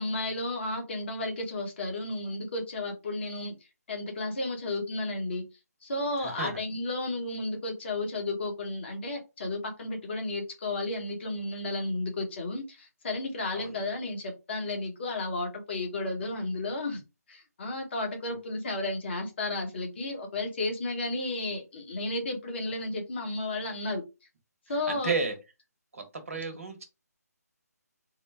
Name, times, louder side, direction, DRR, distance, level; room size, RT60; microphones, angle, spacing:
voice 1, 0.0-3.6 3.9-5.4 5.8-17.0 17.3-24.0 24.7-25.1, left 2 dB, 40° left, 3 dB, 1.2 m, -33 dB
voice 2, 6.2-6.5 13.5-13.7 18.3-18.4 24.9-25.4 25.9-26.8, right 4 dB, 55° right, 7 dB, 1.1 m, -32 dB
3.8 x 2.2 x 3.3 m, 0.26 s
figure-of-eight pair, 150°, 9 cm